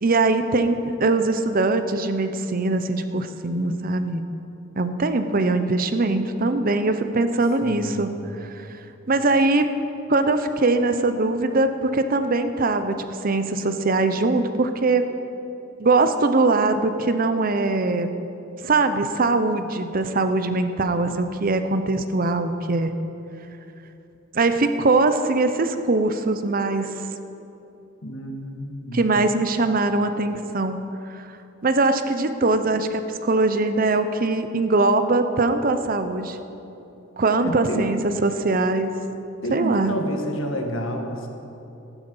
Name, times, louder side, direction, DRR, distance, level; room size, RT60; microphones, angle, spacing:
voice 1, 0.0-4.2 4.8-8.1 8.4-8.7 9.1-9.7 10.1-15.1 15.8-18.1 18.6-22.9 24.3-27.1 28.9-30.8 31.1-31.3 31.6-36.4 37.2-39.0 39.5-39.9, right 3 dB, 45° right, 9 dB, 0.7 m, -22 dB
voice 2, 7.6-8.4 28.0-29.1 37.4-37.9 39.4-41.3, equal, 75° left, 3 dB, 1.7 m, -29 dB
14.5 x 12.0 x 5.4 m, 2.9 s
head